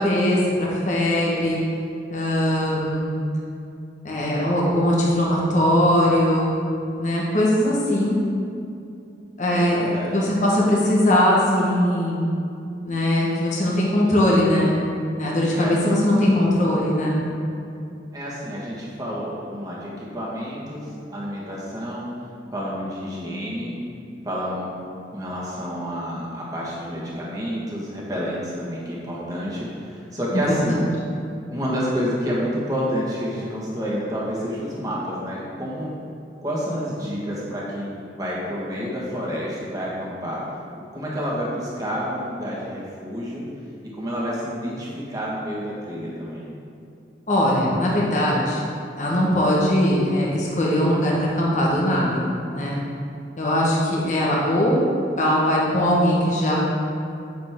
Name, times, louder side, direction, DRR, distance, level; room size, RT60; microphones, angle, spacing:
voice 1, 0.0-1.6 2.1-3.2 4.0-6.5 7.0-8.2 9.4-12.3 12.8-14.8 15.2-17.2 30.3-30.8 47.3-48.6 49.0-52.3 52.5-52.8 53.4-54.8 55.2-56.6, left 1 dB, 45° left, -5 dB, 1.3 m, -20 dB
voice 2, 9.5-10.1 15.5-15.8 18.1-22.1 22.5-23.7 24.2-24.7 25.1-30.8 31.5-36.0 36.4-40.4 40.9-43.4 43.9-46.5, equal, 20° right, -6 dB, 1.5 m, -29 dB
8.5 x 6.6 x 3.6 m, 2.6 s
head